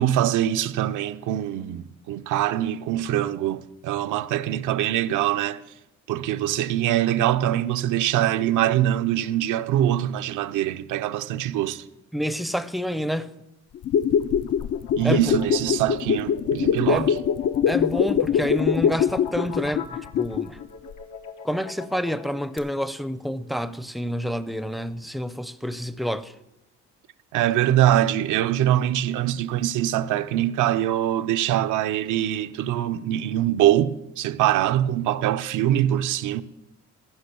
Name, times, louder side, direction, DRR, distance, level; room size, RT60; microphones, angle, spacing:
voice 1, 0.0-5.6 6.1-11.8 14.9-17.1 27.3-36.4, right 12 dB, 80° right, 0.6 m, -23 dB
voice 2, 12.1-13.3 15.0-15.3 16.9-17.1 17.7-20.6 21.4-26.3, equal, ahead, 0.5 m, -28 dB
sound 1, 13.8-20.6 20.9-21.0, left 8 dB, 55° left, 0.5 m, -23 dB
sound 2, 14.1-22.6, left 7 dB, 85° left, 1.3 m, -40 dB
15.0 x 6.2 x 6.8 m
cardioid pair, 90°, 30 cm